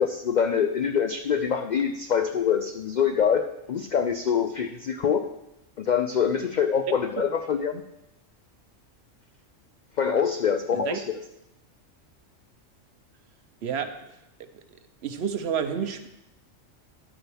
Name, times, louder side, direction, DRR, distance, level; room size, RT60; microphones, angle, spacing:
voice 1, 0.0-5.3 5.8-7.8 10.0-11.0, left 7 dB, 65° left, 7 dB, 0.4 m, -25 dB
voice 2, 13.6-13.9 15.0-16.1, right 7 dB, 60° right, 9 dB, 0.9 m, -29 dB
10.0 x 8.8 x 3.5 m, 0.89 s
omnidirectional pair, 1.3 m